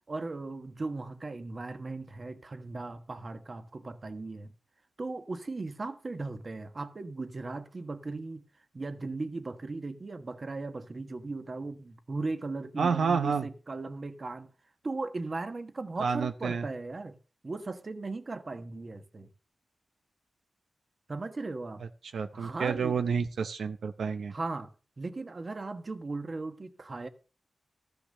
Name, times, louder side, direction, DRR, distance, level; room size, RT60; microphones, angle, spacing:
voice 1, 0.1-4.5 5.0-8.4 8.7-14.5 14.8-17.2 17.4-19.3 21.1-21.8 22.3-22.9 24.3-24.7 25.0-27.1, right 3 dB, 40° right, 1.2 m, -37 dB
voice 2, 12.8-13.5 16.0-16.6 22.0-24.3, right 6 dB, 90° right, 0.7 m, -29 dB
13.5 x 5.9 x 6.6 m
wide cardioid pair, 85°, 0 cm